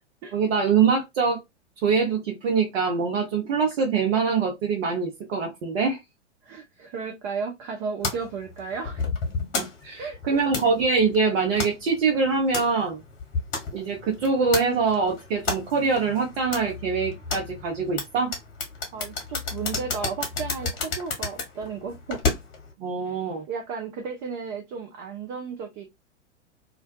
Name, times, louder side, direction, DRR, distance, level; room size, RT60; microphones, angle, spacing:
voice 1, 0.3-1.4 1.8-6.0 9.6-13.0 13.7-18.3 22.8-23.4, right 5 dB, 55° right, 0.9 m, -24 dB
voice 2, 6.4-9.0 10.0-10.4 18.9-22.2 23.1-23.2 23.5-25.9, right 5 dB, 25° right, 0.3 m, -34 dB
sound 1, 8.0-22.7, left 4 dB, 35° left, 1.1 m, -32 dB
2.5 x 2.2 x 2.4 m
figure-of-eight pair, 100°, 37 cm